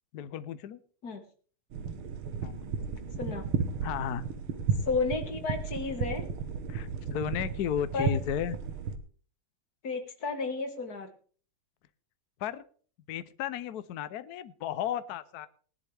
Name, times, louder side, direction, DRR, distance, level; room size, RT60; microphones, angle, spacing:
voice 1, 0.1-0.8 2.4-2.6 3.8-4.2 6.7-8.6 12.4-12.7 13.1-15.5, left 9 dB, 65° left, 13 dB, 1.0 m, -34 dB
sound 1, 1.7-9.0, right 5 dB, 85° right, 2.0 m, -34 dB
voice 2, 4.9-6.3 7.9-8.2 9.8-11.1, left 4 dB, 50° left, 6 dB, 2.1 m, -32 dB
19.5 x 11.0 x 3.4 m, 0.43 s
omnidirectional pair, 2.3 m